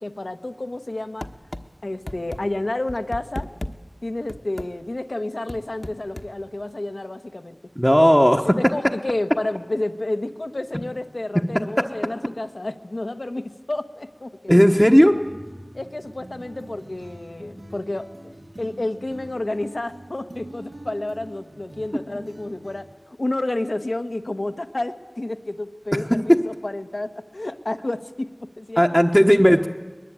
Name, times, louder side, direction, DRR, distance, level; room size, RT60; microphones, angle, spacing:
voice 1, 0.0-1.3 1.8-3.5 4.0-7.6 8.4-14.6 15.7-18.1 18.6-29.1, left 2 dB, 75° left, 7 dB, 1.2 m, -30 dB
sound 1, 1.2-1.6 2.1-2.4 2.9-3.7 4.3-4.7 5.5-6.3, left 1 dB, 45° left, 1.2 m, -33 dB
voice 2, 7.8-8.6 14.5-15.2 28.8-29.7, equal, 5° left, 2 dB, 1.1 m, -15 dB
sound 2, 14.7-22.8, right 1 dB, 85° right, 3.4 m, -43 dB
22.5 x 20.5 x 9.0 m, 1.3 s
wide cardioid pair, 40°, 0 cm